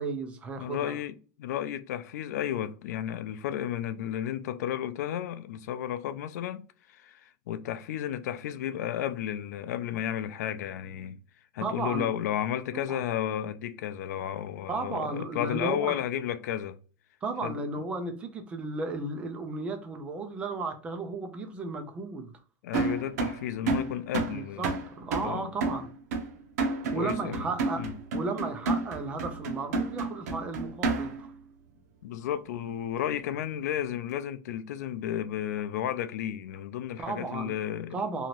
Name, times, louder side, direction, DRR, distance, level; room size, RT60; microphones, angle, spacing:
voice 1, 0.0-1.0 11.6-12.1 12.9-13.0 14.7-15.9 17.2-22.3 24.3-25.9 26.9-27.8 28.1-31.3 37.0-38.3, right 3 dB, 15° right, 0.3 m, -34 dB
voice 2, 0.6-11.2 11.5-16.8 17.4-17.6 22.6-24.7 25.2-25.8 26.9-27.5 27.8-27.9 32.0-38.0, left 11 dB, 80° left, 0.3 m, -33 dB
sound 1, 22.7-31.3, right 3 dB, 75° right, 0.7 m, -31 dB
2.8 x 2.5 x 2.9 m
supercardioid pair, 175°, 9 cm